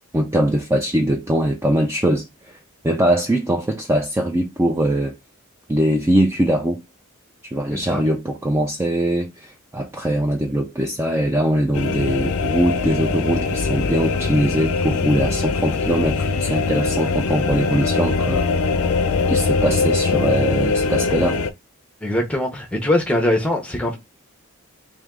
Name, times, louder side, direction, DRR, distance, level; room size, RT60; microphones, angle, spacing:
voice 1, 0.1-2.6 2.8-5.2 5.7-6.8 7.4-18.5 19.3-21.4, right 1 dB, 10° right, 0.4 m, -21 dB
sound 1, 11.7-21.5, left 4 dB, 75° left, 0.5 m, -22 dB
voice 2, 22.0-24.0, left 1 dB, 5° left, 0.8 m, -22 dB
3.4 x 2.7 x 3.6 m
head